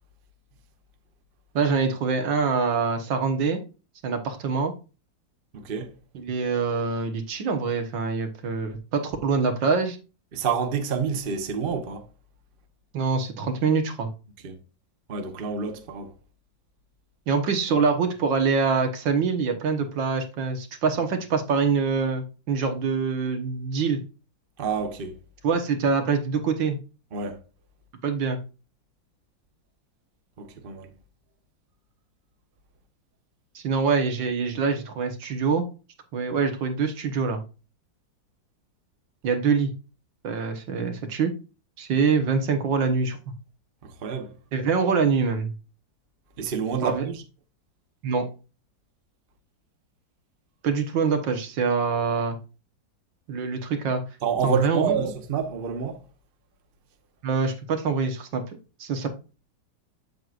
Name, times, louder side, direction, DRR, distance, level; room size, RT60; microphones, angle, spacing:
voice 1, 1.6-3.6 4.0-4.7 6.1-10.0 12.9-14.1 17.3-24.0 25.4-26.8 28.0-28.4 33.6-35.6 36.1-37.4 39.2-39.7 40.2-41.3 41.8-43.2 44.5-45.5 46.8-47.1 48.0-48.3 50.6-52.4 53.3-54.0 54.4-55.0 57.2-59.1, right 5 dB, 75° right, 1.9 m, -25 dB
voice 2, 5.5-5.9 10.3-12.1 14.4-14.6 15.1-16.1 24.6-25.2 27.1-27.4 30.4-30.9 43.8-44.3 46.4-47.2 54.2-56.0, right 6 dB, 35° right, 0.9 m, -28 dB
7.8 x 7.6 x 2.5 m
omnidirectional pair, 2.0 m